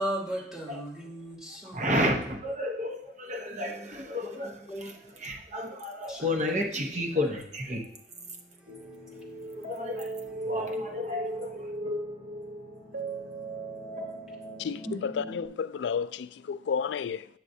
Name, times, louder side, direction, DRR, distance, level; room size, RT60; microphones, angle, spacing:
voice 1, 0.0-2.0 4.7-4.9 6.1-6.3 8.1-8.6, right 1 dB, ahead, 2.4 m, -36 dB
voice 2, 1.7-7.8 9.5-10.1 10.4-11.7, left 1 dB, 40° right, 1.0 m, -31 dB
sound 1, 8.7-15.5, right 1 dB, 85° right, 2.1 m, -37 dB
voice 3, 14.6-17.3, left 6 dB, 75° left, 0.3 m, -32 dB
9.0 x 7.4 x 2.7 m
head